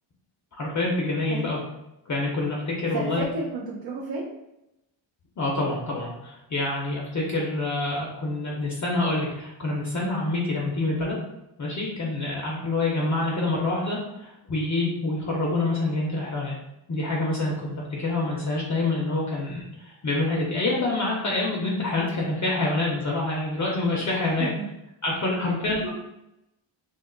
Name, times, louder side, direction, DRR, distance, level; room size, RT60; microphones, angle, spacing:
voice 1, 0.6-1.6 2.1-3.3 5.4-11.2 11.6-16.6 16.9-24.5 25.0-25.9, left 2 dB, 35° left, -3 dB, 0.5 m, -27 dB
voice 2, 2.9-4.3 24.4-24.7 25.4-25.6, right 3 dB, 50° right, -3 dB, 0.5 m, -32 dB
2.5 x 2.3 x 3.7 m, 0.89 s
wide cardioid pair, 140°, 49 cm